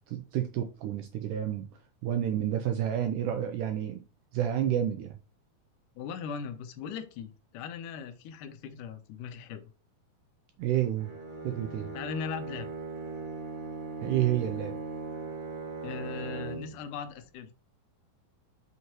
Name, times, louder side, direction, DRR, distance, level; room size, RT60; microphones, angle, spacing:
voice 1, 0.1-1.7 2.0-4.0 4.3-5.1 10.6-11.1 11.4-11.9 14.0-14.7, right 11 dB, 80° right, 1.9 m, -29 dB
voice 2, 6.0-9.7 11.9-12.7 15.8-17.5, left 7 dB, 75° left, 2.0 m, -39 dB
Bowed string instrument, 11.0-16.9, right 4 dB, 30° right, 1.1 m, -39 dB
6.1 x 5.5 x 3.0 m
omnidirectional pair, 4.2 m